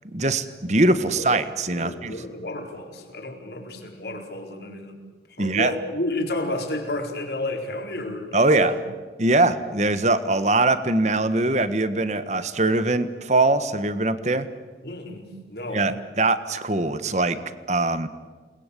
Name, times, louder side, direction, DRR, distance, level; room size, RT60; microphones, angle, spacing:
voice 1, 0.1-2.3 5.4-5.7 8.3-8.7 9.2-14.5 15.7-17.4 17.7-18.1, right 2 dB, 40° right, 12 dB, 1.5 m, -22 dB
voice 2, 1.7-5.0 5.4-8.8 14.8-15.8, left 1 dB, 70° left, 3 dB, 4.4 m, -31 dB
28.5 x 21.5 x 8.5 m, 1.4 s
head